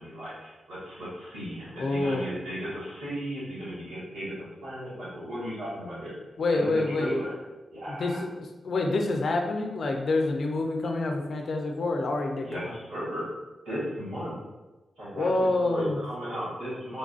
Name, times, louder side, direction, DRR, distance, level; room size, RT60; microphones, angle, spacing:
voice 1, 0.0-6.1 6.5-7.3 7.7-8.2 12.4-13.3 13.6-14.3 15.0-15.3 15.6-17.0, equal, 90° right, -10 dB, 1.4 m, -35 dB
voice 2, 1.8-2.3 6.4-7.1 7.9-12.8 15.1-16.0, left 2 dB, 70° left, 3 dB, 0.5 m, -27 dB
3.8 x 2.4 x 2.4 m, 1.1 s
supercardioid pair, 40°, 0 cm